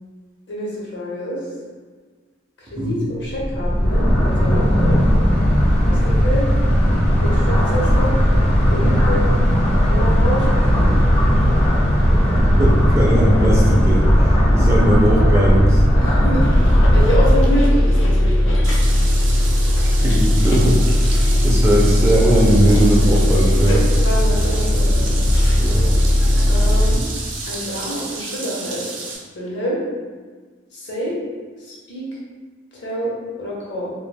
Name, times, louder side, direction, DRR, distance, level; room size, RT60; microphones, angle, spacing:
voice 1, 0.5-1.4 2.7-5.0 5.8-6.4 7.2-8.1 8.7-9.4 9.9-11.0 16.0-19.3 23.7-25.3 26.5-27.1 27.5-28.9 29.3-29.8 30.7-31.2 31.6-32.0 32.7-33.1 33.4-33.9, equal, 65° left, -5 dB, 0.8 m, -27 dB
sound 1, 3.3-17.3, equal, 35° left, 0.5 m, -16 dB
voice 2, 12.6-15.8 19.8-23.8 25.6-25.9, right 1 dB, 15° right, -5 dB, 0.4 m, -19 dB
Bus, 16.4-27.0, left 1 dB, 85° left, 0.4 m, -17 dB
sound 2, 18.6-29.2, right 3 dB, 90° right, 0.6 m, -32 dB
2.3 x 2.1 x 3.3 m, 1.5 s
head